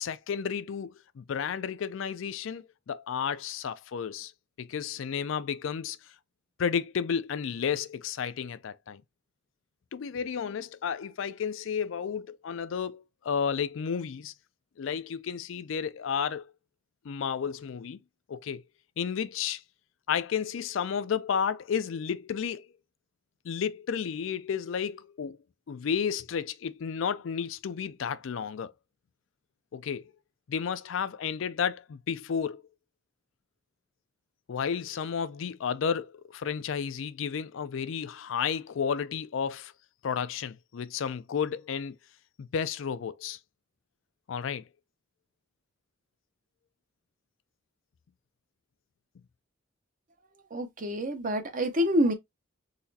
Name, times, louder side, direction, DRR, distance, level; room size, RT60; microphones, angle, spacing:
voice 1, 0.0-4.3 4.6-6.0 6.6-9.0 9.9-14.3 14.8-16.5 17.0-18.0 18.3-18.6 19.0-19.6 20.1-22.7 23.4-25.4 25.7-28.7 29.7-30.0 30.5-32.6 34.5-39.7 40.0-42.0 42.4-43.4 44.3-44.6, left 7 dB, 75° left, 0.4 m, -32 dB
voice 2, 50.5-52.1, equal, 40° right, 0.7 m, -27 dB
4.0 x 3.0 x 2.7 m
head